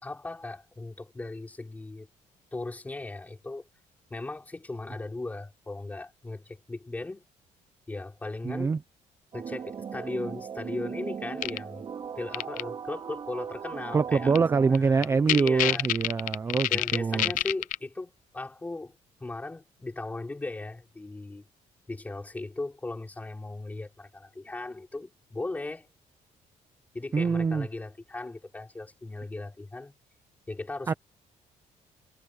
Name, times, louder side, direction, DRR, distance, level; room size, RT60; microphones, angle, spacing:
voice 1, 0.0-2.1 2.5-3.6 4.1-7.3 7.9-8.8 9.3-11.8 12.2-15.8 16.7-18.9 19.2-21.5 21.9-25.9 26.9-29.9 30.5-31.0, left 2 dB, 10° left, 4.5 m, -37 dB
voice 2, 8.4-8.8 13.9-17.3 27.1-27.7 30.9-31.0, right 5 dB, 20° right, 0.7 m, -25 dB
sound 1, 9.3-14.7, right 7 dB, 35° right, 3.2 m, -38 dB
sound 2, 11.4-11.6 12.3-12.6 14.4-14.5 14.7-14.8 15.0-17.8, left 16 dB, 90° left, 0.5 m, -26 dB
cardioid pair, 170°, 13 cm